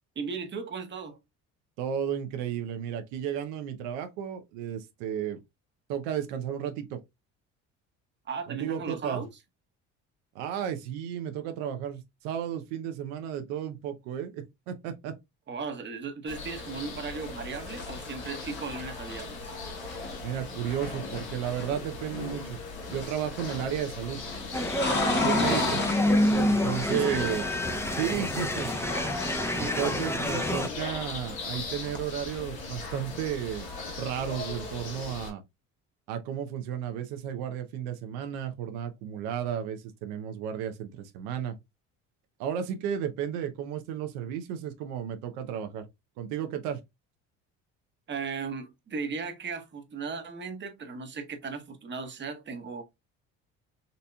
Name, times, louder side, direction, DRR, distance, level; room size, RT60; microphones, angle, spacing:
voice 1, 0.2-1.2 8.3-9.3 15.5-19.5 25.4-25.7 26.9-27.4 29.3-29.9 48.1-52.8, right 5 dB, 35° right, 0.9 m, -36 dB
voice 2, 1.8-5.4 5.9-7.0 8.5-9.2 10.3-15.1 20.2-22.6 22.9-24.2 25.2-25.6 26.4-27.4 27.9-28.7 29.6-33.7 34.0-35.4 36.1-41.6 42.4-45.9 46.2-46.8, right 9 dB, 90° right, 0.7 m, -33 dB
sound 1, 16.3-35.3, left 3 dB, 90° left, 1.5 m, -39 dB
sound 2, 17.5-22.4 22.7-23.7 24.0-27.4 27.7-30.2 30.4-32.1, left 3 dB, 30° left, 1.4 m, -36 dB
sound 3, 24.5-30.7, left 1 dB, 10° left, 0.6 m, -27 dB
4.0 x 2.7 x 2.2 m
supercardioid pair, 85°, 34 cm